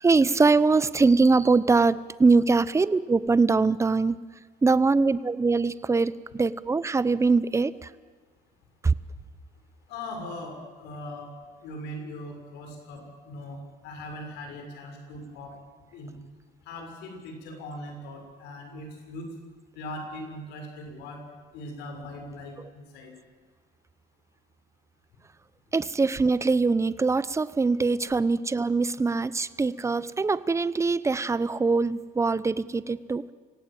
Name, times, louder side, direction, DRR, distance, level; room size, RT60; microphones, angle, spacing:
voice 1, 0.0-4.2 4.6-7.7 8.8-8.9 22.6-22.7 25.7-33.3, right 4 dB, 15° right, 17 dB, 0.8 m, -23 dB
voice 2, 9.9-11.3 11.6-15.5 15.9-16.1 16.7-19.3 19.8-21.2 21.5-23.1, left 1 dB, 90° left, 3 dB, 6.4 m, -40 dB
25.5 x 17.0 x 9.0 m, 1.5 s
cardioid pair, 110°, 17 cm